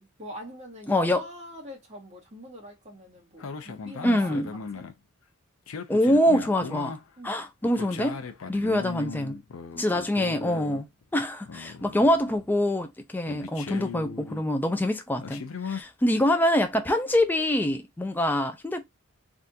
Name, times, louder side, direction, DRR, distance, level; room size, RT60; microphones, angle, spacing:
voice 1, 0.0-4.8 7.2-7.5, equal, 35° right, 1.5 m, -44 dB
voice 2, 0.9-1.2 4.0-4.5 5.9-7.0 7.2-8.2 8.5-9.4 9.8-10.8 11.1-18.8, left 1 dB, 10° left, 0.3 m, -25 dB
sound 1, 3.4-4.9 5.7-7.0 7.6-11.0 11.4-12.6 13.3-14.4 15.2-15.8, left 5 dB, 70° left, 0.5 m, -38 dB
3.5 x 2.5 x 2.7 m
head